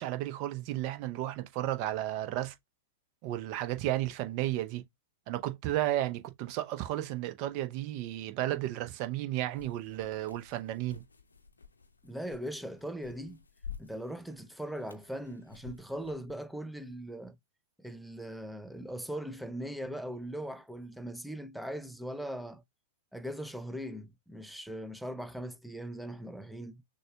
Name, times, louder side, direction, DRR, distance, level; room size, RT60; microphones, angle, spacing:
voice 1, 0.0-2.5 3.2-4.8 5.3-11.0, right 14 dB, 40° right, 0.8 m, -33 dB
sound 1, 9.5-16.3, left 7 dB, 80° left, 0.7 m, -51 dB
voice 2, 12.0-13.4 13.8-17.4 17.8-22.6 23.1-26.8, equal, ahead, 0.5 m, -40 dB
6.3 x 2.3 x 2.3 m
figure-of-eight pair, 100°, 0 cm